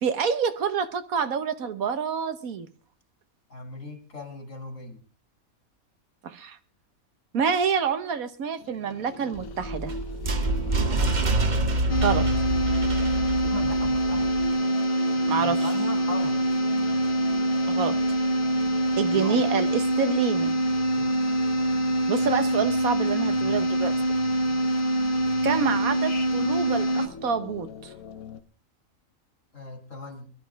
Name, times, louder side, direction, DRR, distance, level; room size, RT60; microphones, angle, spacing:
voice 1, 0.0-2.7 6.2-6.6 7.3-9.9 12.0-12.3 15.3-15.9 17.7-18.0 19.0-20.5 22.1-23.9 25.4-27.9, right 6 dB, 85° right, 10 dB, 1.6 m, -27 dB
voice 2, 3.5-5.0 10.4-11.1 13.4-14.5 15.4-16.5 19.1-19.5 20.9-21.3 25.5-25.8 29.5-30.3, left 2 dB, 65° left, 5 dB, 3.1 m, -39 dB
sound 1, 8.6-28.4, left 5 dB, 80° left, 1.4 m, -41 dB
sound 2, 9.3-14.5, right 2 dB, 35° right, 1.1 m, -26 dB
sound 3, 11.9-27.1, right 1 dB, 40° left, 1.5 m, -25 dB
22.0 x 12.0 x 3.5 m, 0.36 s
omnidirectional pair, 1.5 m